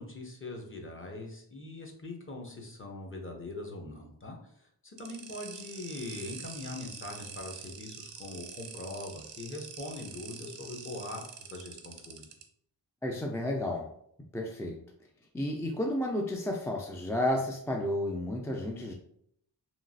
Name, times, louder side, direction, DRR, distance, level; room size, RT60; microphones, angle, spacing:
voice 1, 0.0-12.2, left 2 dB, 30° left, 1 dB, 0.8 m, -42 dB
sound 1, 5.0-12.4, right 6 dB, 80° right, 0.6 m, -45 dB
voice 2, 13.0-13.9 14.3-14.8 15.3-18.9, left 1 dB, 5° left, 0 dB, 0.3 m, -32 dB
2.9 x 2.4 x 2.6 m, 0.69 s
cardioid pair, 40°, 43 cm